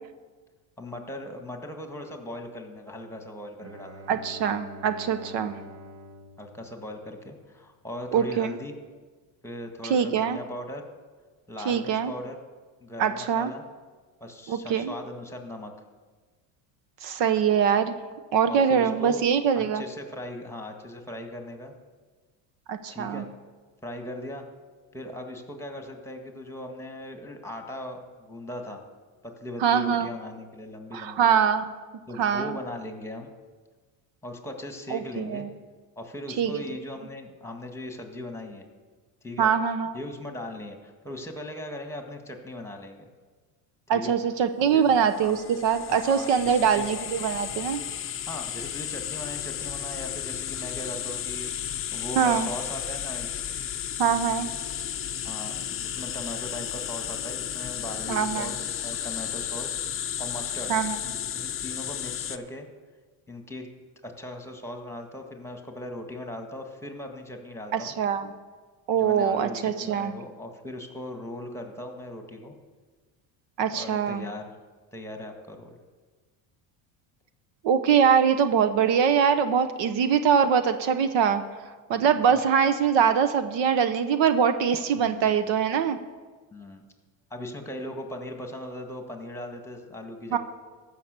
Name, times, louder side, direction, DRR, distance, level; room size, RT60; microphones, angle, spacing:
voice 1, 0.8-4.1 5.6-5.7 6.4-8.7 9.4-10.8 11.5-12.4 12.8-13.6 14.2-15.7 18.5-19.2 19.5-21.7 22.9-23.3 23.8-24.4 24.9-28.8 29.2-31.3 32.1-33.3 34.2-35.5 35.9-38.6 39.2-39.5 39.9-43.1 43.9-44.1 44.7-45.4 45.9-46.9 48.3-53.4 55.2-59.7 60.2-60.7 61.3-62.7 63.3-63.7 64.0-67.9 68.9-72.5 73.7-74.5 74.9-75.8 81.9-82.4 85.0-85.5 86.5-86.8 87.3-90.4, left 1 dB, 5° left, 4 dB, 1.6 m, -39 dB
Bowed string instrument, 3.6-7.5, equal, 30° right, 1.1 m, -46 dB
voice 2, 4.1-5.5 8.1-8.5 9.9-10.4 11.7-12.1 13.0-13.5 14.5-14.9 17.0-18.0 18.3-19.8 22.7-23.2 29.6-30.1 30.9-31.6 32.2-32.6 34.9-35.5 36.4-36.6 39.4-40.0 43.9-45.4 45.6-47.8 52.2-52.5 54.0-54.5 58.1-58.5 60.7-61.0 67.7-68.3 68.9-70.1 73.6-74.2 77.6-81.4 81.9-86.0 90.3-90.4, right 7 dB, 65° right, 10 dB, 0.9 m, -23 dB
sound 1, 45.1-62.4, left 10 dB, 30° left, 0.6 m, -33 dB
14.5 x 6.0 x 6.7 m, 1.4 s
supercardioid pair, 100°, 48 cm